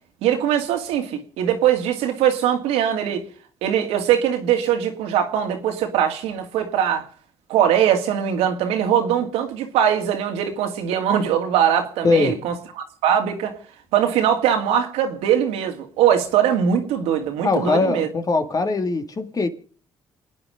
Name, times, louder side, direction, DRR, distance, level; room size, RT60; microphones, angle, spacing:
voice 1, 0.2-3.2 3.6-7.0 7.5-13.6 13.9-18.1, right 9 dB, 90° right, 2.4 m, -21 dB
voice 2, 12.0-12.4 17.4-19.5, left 3 dB, 35° left, 2.2 m, -21 dB
29.0 x 9.7 x 5.0 m
cardioid pair, 80°, 10 cm